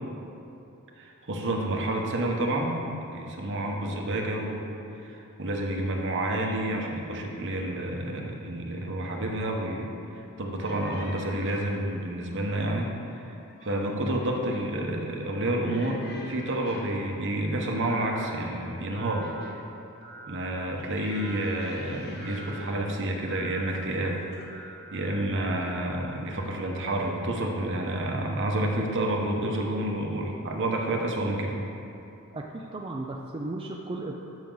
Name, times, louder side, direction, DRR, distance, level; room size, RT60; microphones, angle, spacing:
voice 1, 1.0-4.7 5.0-13.2 13.6-19.3 20.3-24.3 24.9-31.6, right 1 dB, 55° right, 1 dB, 1.1 m, -29 dB
sound 1, 10.6-11.8 13.2-13.9 14.2-14.7 15.6-17.1 18.0-19.7 20.9-22.8 23.7-24.0 24.3-24.5, left 2 dB, 50° left, 1.1 m, -47 dB
sound 2, 17.8-18.4 18.9-19.5 20.0-20.6 21.1-21.7 22.2-22.7 23.3-23.8 24.3-26.3, right 3 dB, 75° right, 1.8 m, -46 dB
voice 2, 32.3-34.1, right 2 dB, 25° right, 0 dB, 0.4 m, -35 dB
12.5 x 6.3 x 3.9 m, 2.9 s
head